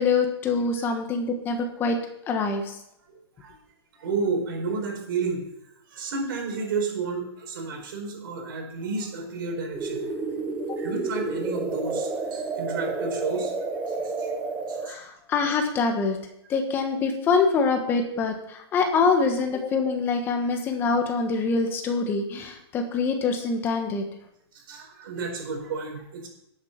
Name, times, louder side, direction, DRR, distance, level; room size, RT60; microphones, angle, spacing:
voice 1, 0.0-2.0 2.3-2.6 14.8-16.2 16.5-24.0, left 4 dB, 15° left, 5 dB, 1.3 m, -25 dB
voice 2, 3.1-3.6 4.0-5.4 5.9-10.1 10.8-13.5 13.9-14.3 14.7-14.9 18.8-19.0 24.5-26.3, right 4 dB, 55° right, 3 dB, 4.4 m, -31 dB
sound 1, 9.7-14.9, right 3 dB, 10° right, 0.8 m, -30 dB
12.0 x 8.3 x 5.8 m, 0.80 s
hypercardioid pair, 170°, 14 cm